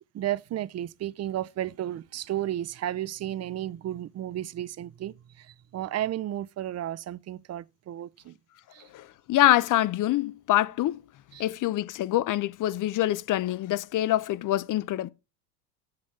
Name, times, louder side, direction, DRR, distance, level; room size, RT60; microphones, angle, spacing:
voice 1, 0.1-8.4 8.7-8.9 11.3-11.4, right 12 dB, 35° right, 0.6 m, -33 dB
voice 2, 8.9-11.0 11.4-15.1, left 14 dB, 40° left, 0.6 m, -25 dB
7.8 x 7.0 x 4.6 m
hypercardioid pair, 80°, 49 cm